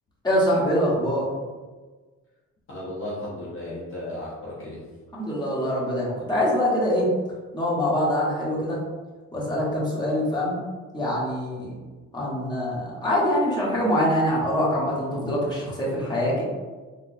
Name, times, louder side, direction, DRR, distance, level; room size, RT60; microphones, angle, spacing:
voice 1, 0.2-1.3 5.1-7.1 7.5-8.8 9.3-10.6 10.9-11.7 12.1-16.4, equal, 15° left, -6 dB, 1.2 m, -24 dB
voice 2, 2.7-4.8, left 1 dB, 45° left, -8 dB, 0.9 m, -34 dB
3.8 x 2.3 x 2.6 m, 1.3 s
cardioid pair, 90°, 30 cm